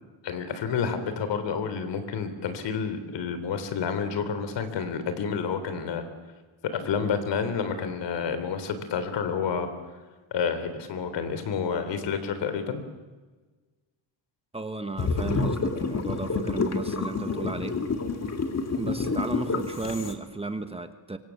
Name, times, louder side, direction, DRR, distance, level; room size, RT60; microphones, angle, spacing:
voice 1, 0.2-6.0 6.8-9.7 10.3-12.8, left 6 dB, 65° left, 10 dB, 3.6 m, -29 dB
voice 2, 14.5-17.8 18.8-21.2, right 3 dB, 15° right, 8 dB, 1.2 m, -34 dB
sound 1, 15.0-20.1, left 4 dB, 35° left, 2.2 m, -28 dB
25.0 x 24.5 x 7.3 m, 1.3 s
cardioid pair, 150°, 46 cm